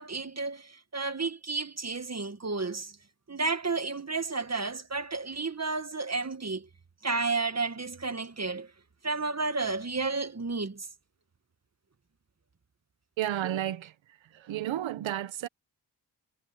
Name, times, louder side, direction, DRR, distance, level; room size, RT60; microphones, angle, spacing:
voice 1, 0.0-2.9 3.3-6.7 7.0-8.7 9.0-10.9, right 3 dB, 35° right, 1.9 m, -32 dB
voice 2, 13.2-13.9 14.3-15.5, right 12 dB, 85° right, 1.3 m, -32 dB
supercardioid pair, 40°, 45 cm